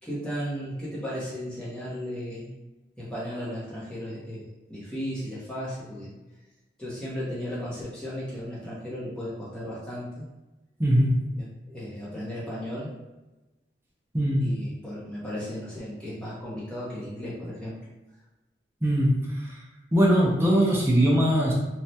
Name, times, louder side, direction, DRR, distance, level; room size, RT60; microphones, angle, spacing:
voice 1, 0.0-2.5 3.0-6.1 6.8-10.2 11.4-13.0 14.4-17.8, equal, 5° left, -9 dB, 0.8 m, -35 dB
voice 2, 10.8-11.2 14.1-14.5 18.8-19.6 19.9-21.5, equal, 15° right, -4 dB, 0.5 m, -21 dB
3.2 x 2.3 x 2.7 m, 1.1 s
head